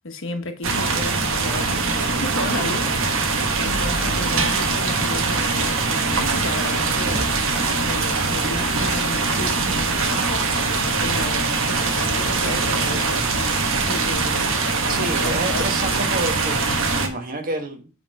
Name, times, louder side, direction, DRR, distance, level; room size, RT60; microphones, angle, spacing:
voice 1, 0.0-7.3 7.8-13.2 13.9-14.5 14.8-15.7, left 2 dB, 65° left, 1.2 m, -33 dB
sound 1, 0.6-17.1, right 4 dB, 65° right, 1.3 m, -22 dB
sound 2, 3.6-10.5, equal, ahead, 0.7 m, -35 dB
voice 2, 14.9-17.9, right 2 dB, 40° right, 1.3 m, -29 dB
8.3 x 3.7 x 5.3 m
head